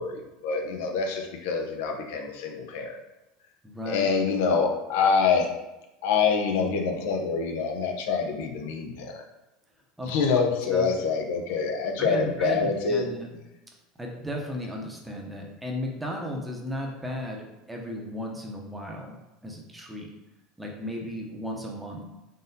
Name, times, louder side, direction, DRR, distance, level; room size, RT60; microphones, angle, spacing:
voice 1, 0.0-3.0 3.9-5.5 6.0-9.2 10.0-13.0, left 5 dB, 75° left, 3 dB, 0.6 m, -26 dB
voice 2, 3.6-4.1 10.0-10.1 10.7-10.9 12.0-13.3 14.0-20.1 20.6-22.1, equal, 5° right, 0 dB, 0.7 m, -35 dB
3.9 x 3.7 x 2.7 m, 0.96 s
supercardioid pair, 140°, 0 cm